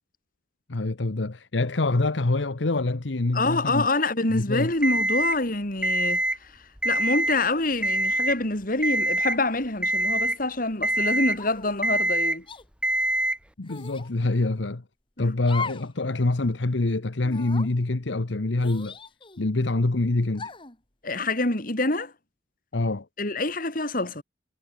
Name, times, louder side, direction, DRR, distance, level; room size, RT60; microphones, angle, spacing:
voice 1, 0.7-3.9 4.3-4.7 13.6-14.8 15.2-19.0 19.4-20.5 22.7-23.1, left 2 dB, 85° left, 1.0 m, -25 dB
voice 2, 3.3-12.5 15.2-15.3 21.0-22.1 23.2-24.2, left 2 dB, 50° left, 3.9 m, -26 dB
Alarm, 4.8-5.4 5.8-6.4 6.8-7.4 7.8-8.4 8.8-9.4 9.8-10.4 10.8-11.4 11.8-12.4 12.8-13.4, right 1 dB, 5° right, 1.6 m, -24 dB
sound 1, 11.4-11.8 12.5-12.6 13.7-14.1 15.4-15.9 16.3-16.4 17.2-17.7 18.6-19.5 20.3-20.8, left 4 dB, 30° left, 3.3 m, -38 dB
head